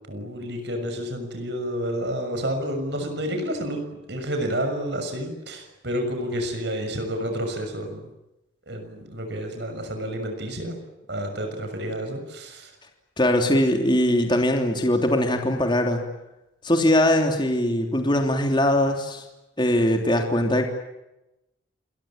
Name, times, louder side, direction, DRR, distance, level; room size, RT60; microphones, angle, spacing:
voice 1, 0.1-8.0 8.7-10.8 11.1-12.7, equal, 60° right, 5 dB, 6.5 m, -30 dB
voice 2, 13.2-16.0 16.6-19.2 19.6-20.7, left 1 dB, 25° left, 3 dB, 3.2 m, -21 dB
28.0 x 22.5 x 9.0 m, 0.94 s
head